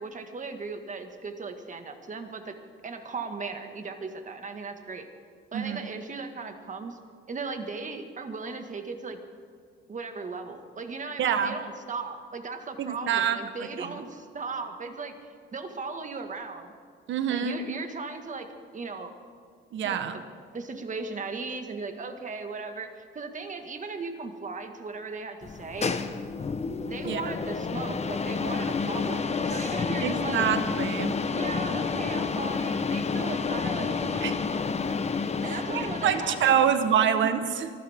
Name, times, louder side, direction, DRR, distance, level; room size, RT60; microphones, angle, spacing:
voice 1, 0.0-2.6 2.8-5.1 5.5-7.0 7.3-9.2 9.9-15.2 15.5-16.7 17.3-19.1 19.8-20.2 20.5-26.0 26.8-30.5 31.3-34.0 35.4-36.6 37.0-37.3, right 4 dB, 40° right, 6 dB, 1.9 m, -37 dB
voice 2, 5.5-5.9 11.2-11.6 12.8-13.9 17.1-17.6 19.7-20.2 27.0-27.2 30.0-31.2 34.2-34.4 35.7-37.7, right 8 dB, 75° right, 9 dB, 1.3 m, -26 dB
sound 1, 25.4-37.0, left 5 dB, 35° left, 1.1 m, -30 dB
24.5 x 14.5 x 3.7 m, 2.2 s
cardioid pair, 90°, 20 cm